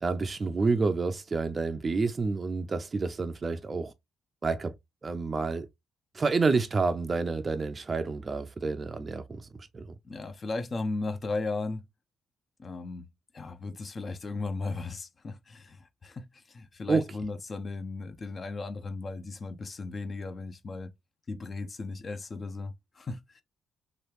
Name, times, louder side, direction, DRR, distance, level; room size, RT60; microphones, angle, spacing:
voice 1, 0.0-3.9 4.4-4.7 5.0-5.7 6.1-9.9 16.9-17.0, right 4 dB, 35° right, 0.4 m, -29 dB
voice 2, 10.1-11.8 12.6-13.1 13.3-20.9 21.3-23.4, left 3 dB, 40° left, 0.5 m, -36 dB
3.1 x 2.3 x 3.1 m
supercardioid pair, 60°, 0 cm